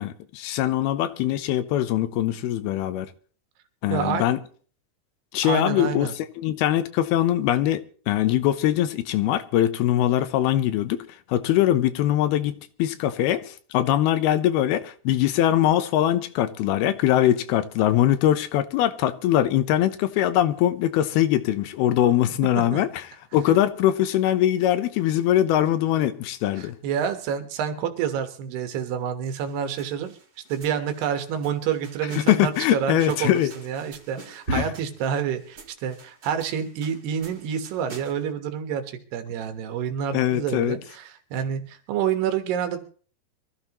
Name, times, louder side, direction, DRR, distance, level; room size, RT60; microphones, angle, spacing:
voice 1, 0.0-3.1 3.8-4.4 5.3-6.1 6.4-7.8 8.1-11.0 11.3-22.9 23.3-26.8 32.2-33.5 34.5-34.7 40.1-40.8, left 12 dB, 80° left, 2.7 m, -22 dB
voice 2, 3.9-4.3 5.4-6.1 22.6-22.8 23.5-23.6 26.6-30.1 30.5-42.8, right 8 dB, 85° right, 3.3 m, -28 dB
sound 1, 29.3-38.3, right 2 dB, 40° right, 1.6 m, -42 dB
24.0 x 14.5 x 3.0 m
omnidirectional pair, 4.5 m